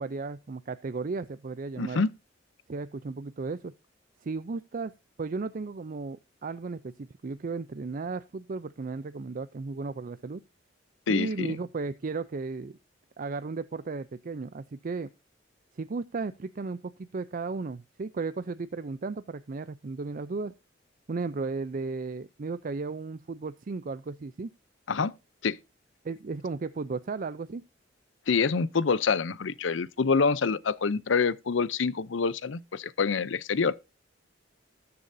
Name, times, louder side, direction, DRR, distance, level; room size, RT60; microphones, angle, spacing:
voice 1, 0.0-2.0 2.7-3.7 4.2-4.9 5.2-10.4 11.1-12.8 13.2-15.1 15.7-20.5 21.1-24.5 26.0-27.6, right 4 dB, 45° right, 0.5 m, -35 dB
voice 2, 1.8-2.1 11.1-11.5 24.9-25.1 25.4-25.6 28.3-33.7, left 5 dB, 80° left, 0.6 m, -26 dB
19.5 x 6.9 x 2.6 m
head